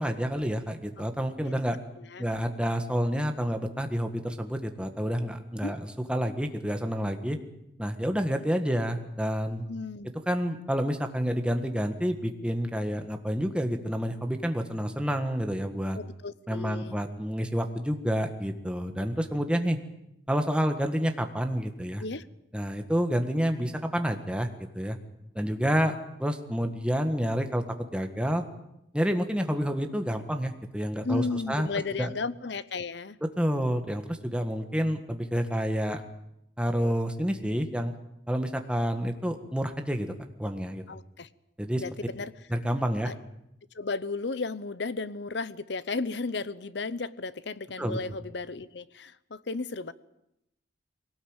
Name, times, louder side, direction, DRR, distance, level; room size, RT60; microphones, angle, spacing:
voice 1, 0.0-1.8 2.2-7.4 7.8-9.6 10.3-16.0 16.5-19.8 20.3-22.0 22.5-24.5 24.7-25.0 25.3-27.6 27.9-28.4 28.9-31.7 32.0-32.1 33.2-36.0 36.6-37.9 38.3-40.1 40.4-40.8 41.6-41.8 42.5-43.1 47.8-48.0, equal, 5° right, 6 dB, 1.6 m, -29 dB
voice 2, 9.7-10.1 15.9-17.0 22.0-22.3 31.0-33.2 40.9-41.3 41.8-42.3 43.0-43.1 43.7-49.9, left 3 dB, 65° left, 17 dB, 0.8 m, -34 dB
21.5 x 18.5 x 9.0 m, 0.84 s
head